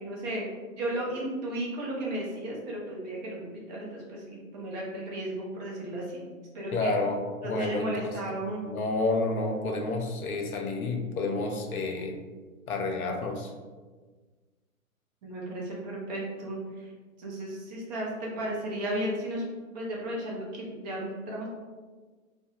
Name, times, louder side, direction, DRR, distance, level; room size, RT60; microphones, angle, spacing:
voice 1, 0.0-0.5 0.7-6.2 6.5-6.9 7.4-8.6 15.2-16.9 17.2-19.5 19.7-21.5, right 1 dB, 30° right, -3 dB, 0.6 m, -34 dB
voice 2, 6.7-8.2 8.7-12.2 12.7-13.5, left 3 dB, 85° left, 3 dB, 0.6 m, -30 dB
2.3 x 2.2 x 2.7 m, 1.4 s
hypercardioid pair, 120°, 42 cm